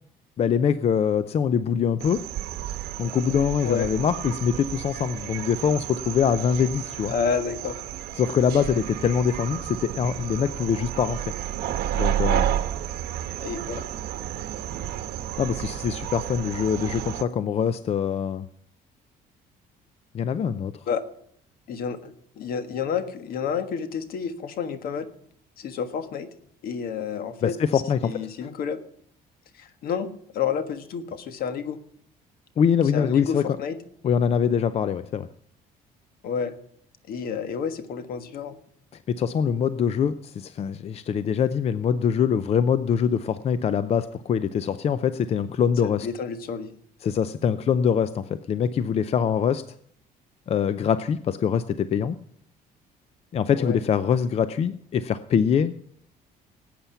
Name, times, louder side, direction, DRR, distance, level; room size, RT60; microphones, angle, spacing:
voice 1, 0.4-2.2 3.0-7.1 8.2-11.2 11.9-12.5 15.4-18.5 20.1-20.7 27.4-28.1 32.6-33.4 34.0-35.3 39.1-46.1 47.0-49.6 50.5-52.2 53.3-55.7, left 7 dB, 40° left, 13 dB, 0.5 m, -24 dB
sound 1, 2.0-17.2, right 12 dB, 80° right, 1.1 m, -31 dB
voice 2, 7.1-7.8 13.4-13.8 20.9-21.0 21.7-25.1 25.6-26.3 26.6-28.8 29.5-30.1 30.3-31.8 32.9-33.8 36.2-36.5 37.1-38.6 45.8-46.7 53.5-53.8, left 6 dB, 65° left, 9 dB, 1.5 m, -30 dB
18.5 x 8.6 x 5.7 m, 0.66 s
cardioid pair, 140°, 16 cm